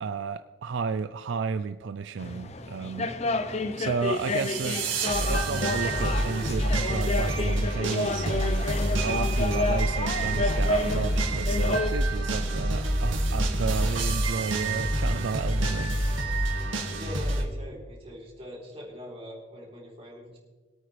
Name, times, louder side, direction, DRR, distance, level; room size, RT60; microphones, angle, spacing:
voice 1, 0.0-3.1 3.8-4.8 5.2-8.7 9.0-16.0, right 5 dB, 70° right, 11 dB, 0.4 m, -32 dB
sound 1, 2.2-11.9, left 2 dB, 35° left, 0.6 m, -30 dB
sound 2, 4.1-17.4, right 1 dB, 85° right, 2.3 m, -27 dB
voice 2, 16.9-20.4, equal, 30° right, -4 dB, 3.8 m, -42 dB
23.0 x 8.8 x 3.3 m, 1.3 s
head